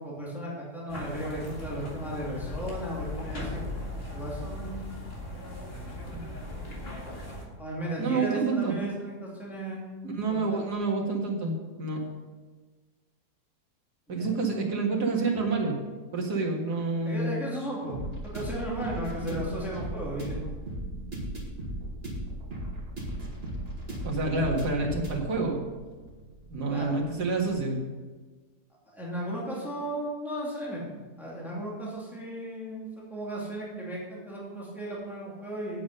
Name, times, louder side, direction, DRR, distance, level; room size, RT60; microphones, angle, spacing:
voice 1, 0.0-3.7 4.1-5.0 7.6-9.9 10.3-10.6 14.2-14.3 17.0-17.9 18.2-20.4 26.7-27.1 28.9-35.8, right 1 dB, ahead, -5 dB, 2.7 m, -35 dB
sound 1, 0.9-7.4, left 2 dB, 40° left, 2.3 m, -38 dB
voice 2, 8.0-8.8 10.0-12.0 14.1-15.8 16.1-17.5 19.3-19.5 20.8-21.3 24.0-25.6 26.5-27.8, right 3 dB, 80° right, -1 dB, 2.4 m, -28 dB
sound 2, 17.9-27.5, right 1 dB, 40° right, 2.5 m, -37 dB
9.3 x 8.4 x 5.4 m, 1.3 s
omnidirectional pair, 1.7 m